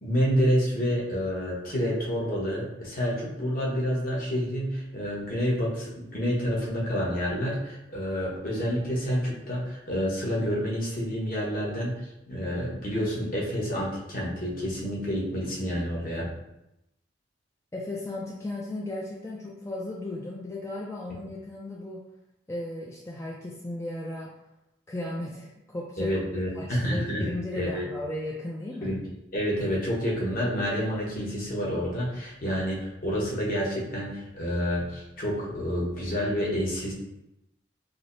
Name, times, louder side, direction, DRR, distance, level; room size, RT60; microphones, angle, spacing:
voice 1, 0.0-12.0 12.3-16.3 26.0-27.3 27.5-27.8 28.8-29.0 29.3-36.9, equal, 50° left, -5 dB, 1.0 m, -28 dB
voice 2, 17.7-22.0 22.5-24.3 24.9-26.2 26.6-29.0, left 1 dB, 15° left, -4 dB, 0.3 m, -35 dB
4.8 x 2.0 x 2.6 m, 0.87 s
head